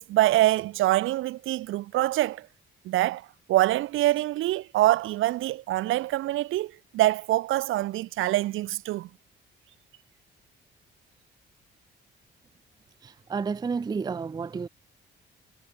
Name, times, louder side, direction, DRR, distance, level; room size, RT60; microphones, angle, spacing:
voice 1, 0.0-2.5 2.8-9.1, right 16 dB, 90° right, 4.7 m, -25 dB
voice 2, 13.3-14.7, right 5 dB, 20° right, 0.4 m, -30 dB
cardioid pair, 90°, 20 cm